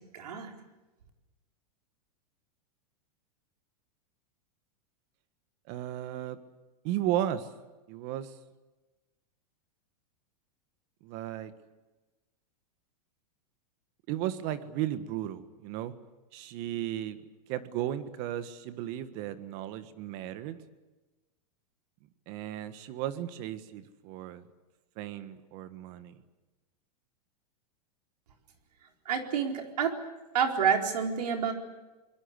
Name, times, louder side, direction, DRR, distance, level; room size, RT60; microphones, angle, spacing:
voice 1, 0.1-0.5 29.1-29.9 30.3-31.5, right 7 dB, 90° right, 3 dB, 4.4 m, -28 dB
voice 2, 5.7-6.4 6.8-7.5 7.9-8.3 11.0-11.5 14.1-15.9 16.3-17.2 17.5-20.6 22.3-24.4 25.0-26.2, right 12 dB, 45° right, 11 dB, 1.6 m, -35 dB
26.0 x 21.5 x 8.3 m, 1.1 s
supercardioid pair, 140°, 20 cm